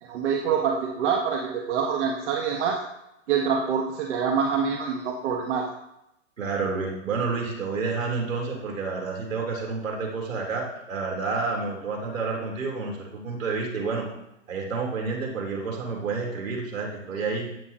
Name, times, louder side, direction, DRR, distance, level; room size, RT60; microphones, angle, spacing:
voice 1, 0.0-2.8 3.3-5.7, right 6 dB, 65° right, 0 dB, 1.6 m, -26 dB
voice 2, 6.4-14.1 14.5-17.5, right 4 dB, 85° right, 0 dB, 3.6 m, -29 dB
14.5 x 9.3 x 2.9 m, 0.85 s
hypercardioid pair, 125°, 38 cm